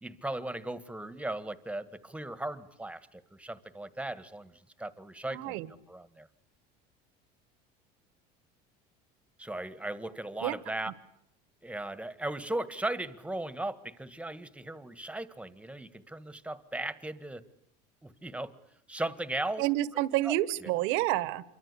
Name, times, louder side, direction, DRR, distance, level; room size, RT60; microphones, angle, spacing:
voice 1, 0.0-5.6 5.9-6.3 9.4-10.9 11.6-17.4 18.0-18.5 18.9-19.6 20.2-20.3 20.6-20.7, right 1 dB, 5° right, 14 dB, 1.8 m, -37 dB
voice 2, 5.3-5.7 10.4-10.5 19.6-21.4, right 16 dB, 70° right, 17 dB, 1.6 m, -29 dB
28.0 x 24.0 x 8.5 m, 0.75 s
supercardioid pair, 125°, 21 cm